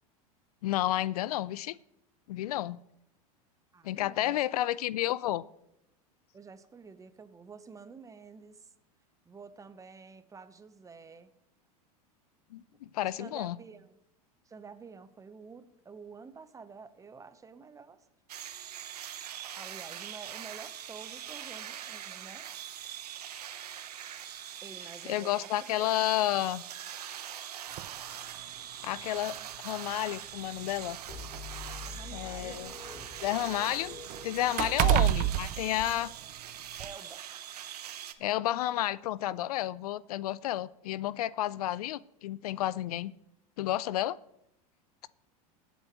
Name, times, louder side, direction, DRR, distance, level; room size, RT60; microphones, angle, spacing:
voice 1, 0.6-1.7 2.3-2.8 3.8-5.4 12.5-13.6 25.1-26.6 28.8-29.4 29.6-31.0 32.1-32.7 33.2-34.0 34.2-36.1 38.2-43.1 43.6-44.2, left 14 dB, 75° left, 20 dB, 0.5 m, -31 dB
voice 2, 3.7-4.6 6.3-8.7 9.2-11.3 13.0-14.0 14.4-18.1 19.6-22.5 24.6-25.9 31.9-32.7 33.7-33.8 34.8-35.0 36.8-37.2, right 5 dB, 15° right, 12 dB, 0.9 m, -49 dB
sound 1, 18.3-38.1, right 10 dB, 85° right, 1.0 m, -43 dB
sound 2, 27.8-27.9 29.0-29.1 29.5-29.7 30.6-32.6 33.0-36.4 36.8-36.9, right 16 dB, 45° right, 0.4 m, -30 dB
sound 3, 31.1-35.8, left 4 dB, 50° left, 3.9 m, -47 dB
22.5 x 8.0 x 3.1 m, 0.81 s
hypercardioid pair, 100°, 19 cm